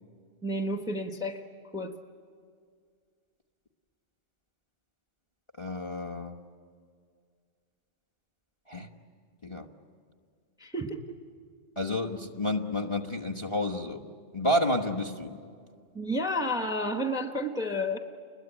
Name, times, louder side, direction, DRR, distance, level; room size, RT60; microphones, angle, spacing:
voice 1, 0.4-1.4 1.7-2.0 10.6-11.2 15.9-18.0, equal, 5° right, 6 dB, 1.1 m, -31 dB
voice 2, 5.6-6.4 8.7-8.9 9.4-9.7 11.8-14.0 14.3-15.3, left 1 dB, 25° left, 5 dB, 1.2 m, -30 dB
30.0 x 22.0 x 9.0 m, 2.1 s
omnidirectional pair, 1.3 m